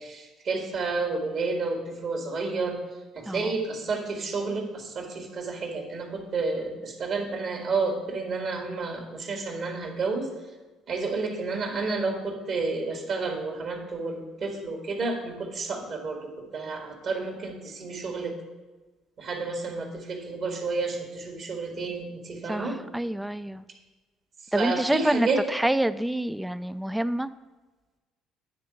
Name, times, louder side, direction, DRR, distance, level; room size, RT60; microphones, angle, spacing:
voice 1, 0.0-2.8 3.2-10.3 10.9-18.3 19.2-22.8 24.5-25.4, right 3 dB, 55° right, 3 dB, 1.8 m, -30 dB
voice 2, 22.5-23.6 24.5-27.3, right 1 dB, 5° right, 14 dB, 0.4 m, -27 dB
9.5 x 3.8 x 7.1 m, 1.2 s
hypercardioid pair, 55°, 0 cm